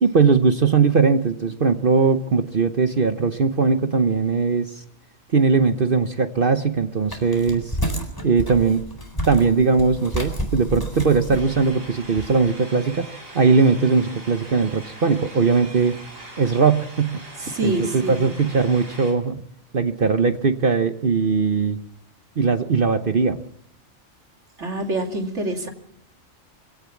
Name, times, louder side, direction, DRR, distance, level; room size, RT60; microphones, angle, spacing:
voice 1, 0.0-4.8 5.3-7.8 8.2-8.8 9.3-13.1 13.3-16.0 16.4-17.2 17.6-19.4 19.7-21.8 22.4-23.4, right 5 dB, 45° right, 9 dB, 1.0 m, -19 dB
sound 1, 7.1-12.4, right 1 dB, 15° left, 4.0 m, -30 dB
sound 2, 11.3-19.1, right 1 dB, 90° right, 5.5 m, -41 dB
voice 2, 17.4-18.3 24.6-25.7, right 1 dB, 60° right, 4 dB, 3.0 m, -26 dB
23.0 x 16.5 x 7.1 m, 0.74 s
omnidirectional pair, 1.4 m